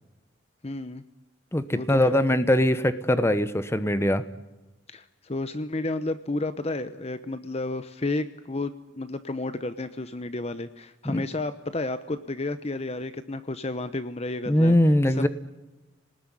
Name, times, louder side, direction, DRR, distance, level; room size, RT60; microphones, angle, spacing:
voice 1, 0.6-1.0 1.7-2.1 4.9-14.8 15.2-15.3, left 2 dB, 35° left, 12 dB, 0.9 m, -32 dB
voice 2, 1.5-4.2 11.0-11.3 14.5-15.3, left 1 dB, 15° left, 12 dB, 1.1 m, -22 dB
29.0 x 19.5 x 9.9 m, 1.1 s
head